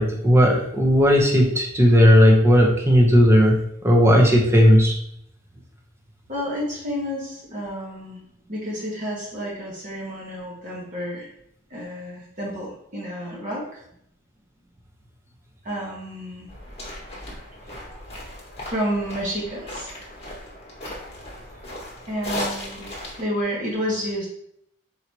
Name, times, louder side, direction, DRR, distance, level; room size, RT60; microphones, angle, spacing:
voice 1, 0.0-3.6 3.8-5.0, equal, 10° right, -1 dB, 0.7 m, -15 dB
voice 2, 6.3-8.2 8.5-11.3 11.7-13.8 15.6-16.5 18.6-19.9 22.1-22.9 23.2-24.3, equal, 35° right, -4 dB, 1.1 m, -30 dB
sound 1, 16.5-23.2, left 1 dB, 30° left, 1.2 m, -36 dB
4.0 x 2.8 x 4.5 m, 0.72 s
head